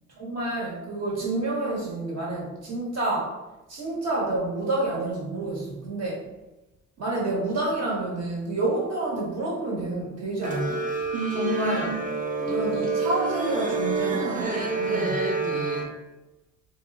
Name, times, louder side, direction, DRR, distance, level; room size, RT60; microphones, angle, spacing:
voice 1, 0.2-3.3 3.7-6.3 7.0-10.9 11.3-12.0 12.4-15.2, right 2 dB, 55° right, -3 dB, 1.2 m, -29 dB
sound 1, 10.4-15.9, right 3 dB, 25° right, 0.6 m, -27 dB
2.6 x 2.2 x 3.4 m, 1.0 s
cardioid pair, 90°, 30 cm